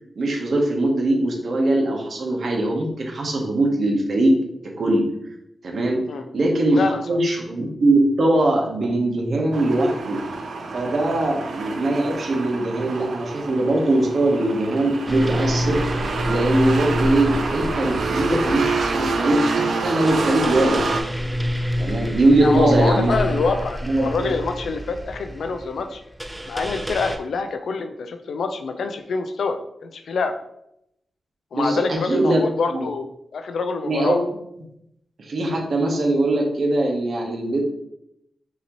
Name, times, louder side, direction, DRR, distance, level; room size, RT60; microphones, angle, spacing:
voice 1, 0.2-4.4 4.6-5.1 5.6-6.0 6.3-10.2 10.7-15.8 16.3-20.9 21.8-23.1 23.8-24.3 31.5-32.4 32.7-32.9 33.9-34.2 35.2-37.6, right 1 dB, 65° right, 1 dB, 1.0 m, -21 dB
sound 1, 9.5-21.0, right 3 dB, 80° right, 0.5 m, -27 dB
sound 2, 15.1-27.2, equal, 5° right, 0.4 m, -28 dB
voice 2, 22.4-26.0 26.5-30.3 31.5-33.1 33.3-34.2, left 4 dB, 85° left, 7 dB, 0.4 m, -26 dB
5.6 x 2.8 x 3.0 m, 0.78 s
wide cardioid pair, 115°, 0 cm